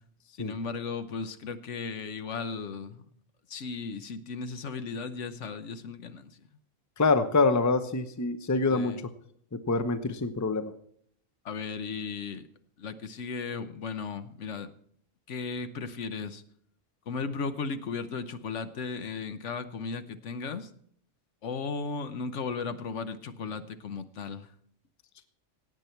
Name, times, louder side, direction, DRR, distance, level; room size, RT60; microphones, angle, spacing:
voice 1, 0.4-3.0 3.5-6.3 8.7-9.1 11.4-12.5 12.8-14.7 15.3-16.4 17.1-20.7 21.4-24.5, left 5 dB, 65° left, 11 dB, 1.2 m, -36 dB
voice 2, 7.0-8.9 9.5-10.7, left 3 dB, 15° left, 10 dB, 0.7 m, -25 dB
17.5 x 8.4 x 4.5 m, 0.65 s
omnidirectional pair, 1.3 m